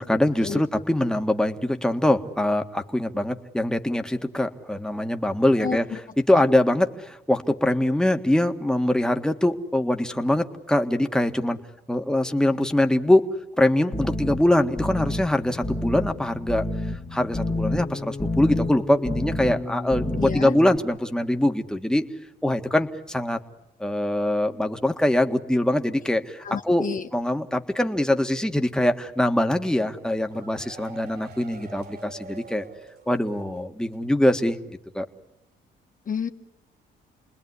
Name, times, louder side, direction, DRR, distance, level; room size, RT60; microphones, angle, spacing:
voice 1, 0.0-5.8 6.2-11.6 11.9-16.7 17.1-22.0 22.4-23.4 23.8-32.6 33.1-35.1, left 1 dB, 5° left, 6 dB, 1.8 m, -23 dB
voice 2, 5.6-6.0 20.2-20.6 26.4-27.1 36.1-36.3, left 6 dB, 40° left, 7 dB, 1.2 m, -30 dB
sound 1, 13.9-20.8, left 2 dB, 25° left, 1.7 m, -29 dB
sound 2, 29.9-33.6 33.9-34.0 34.3-34.4, right 4 dB, 50° right, 3.2 m, -45 dB
29.5 x 20.5 x 9.8 m, 0.90 s
cardioid pair, 90°, 20 cm